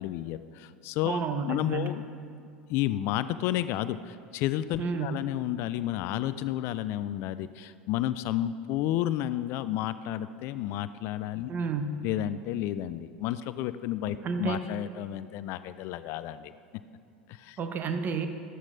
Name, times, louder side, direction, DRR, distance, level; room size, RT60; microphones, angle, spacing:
voice 1, 0.0-1.2 1.5-2.0 2.7-11.5 12.0-16.5 17.3-17.6, left 13 dB, 45° left, 14 dB, 0.3 m, -31 dB
voice 2, 1.0-2.0 4.8-5.2 11.5-12.0 14.2-14.6 17.6-18.3, right 5 dB, 35° right, 7 dB, 0.9 m, -30 dB
13.0 x 12.5 x 2.6 m, 2.4 s
figure-of-eight pair, 80°, 6 cm